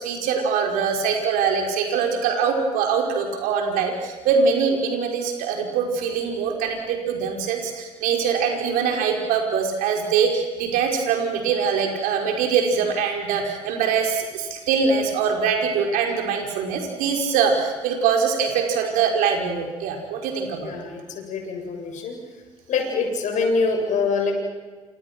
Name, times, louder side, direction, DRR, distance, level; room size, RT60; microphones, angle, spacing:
voice 1, 0.0-20.8, right 6 dB, 65° right, 2 dB, 5.3 m, -23 dB
voice 2, 20.6-22.2 22.7-24.3, left 4 dB, 55° left, 2 dB, 7.9 m, -25 dB
28.5 x 28.5 x 6.2 m, 1.3 s
hypercardioid pair, 55°, 15 cm